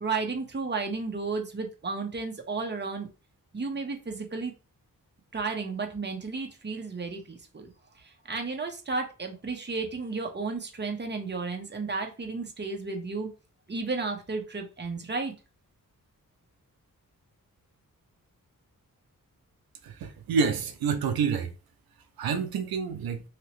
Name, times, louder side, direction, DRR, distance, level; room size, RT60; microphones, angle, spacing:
voice 1, 0.0-3.1 3.5-4.5 5.3-7.7 8.3-13.3 13.7-15.3, right 4 dB, 30° right, 0.9 m, -33 dB
voice 2, 19.8-21.5 22.2-23.2, right 5 dB, 90° right, 0.5 m, -28 dB
2.9 x 2.8 x 3.0 m
cardioid pair, 65°, 35 cm